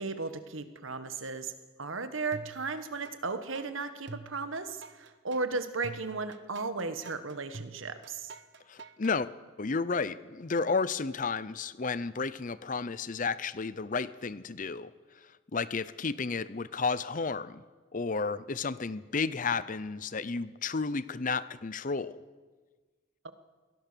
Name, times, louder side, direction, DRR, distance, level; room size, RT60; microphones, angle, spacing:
voice 1, 0.0-1.5 1.8-8.3 23.2-23.3, right 3 dB, 85° right, 10 dB, 1.5 m, -35 dB
sound 1, 2.3-3.2 3.5-9.2, right 3 dB, 60° right, 0.9 m, -46 dB
voice 2, 8.7-9.3 9.6-17.6 17.9-22.2, left 4 dB, 40° left, 16 dB, 0.6 m, -32 dB
23.0 x 17.5 x 6.9 m, 1.4 s
head